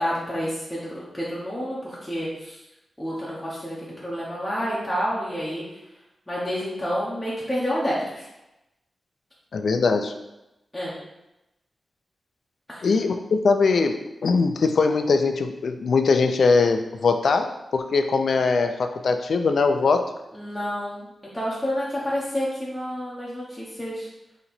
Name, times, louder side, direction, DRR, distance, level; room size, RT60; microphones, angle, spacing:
voice 1, 0.0-2.6 3.0-5.6 6.3-8.3 10.7-10.9 12.7-12.9 20.3-21.1 21.3-24.1, equal, 10° left, -8 dB, 0.8 m, -29 dB
voice 2, 9.5-10.1 12.8-20.1, left 4 dB, 65° left, 6 dB, 0.4 m, -21 dB
4.0 x 2.9 x 4.3 m, 0.94 s
wide cardioid pair, 165°, 0 cm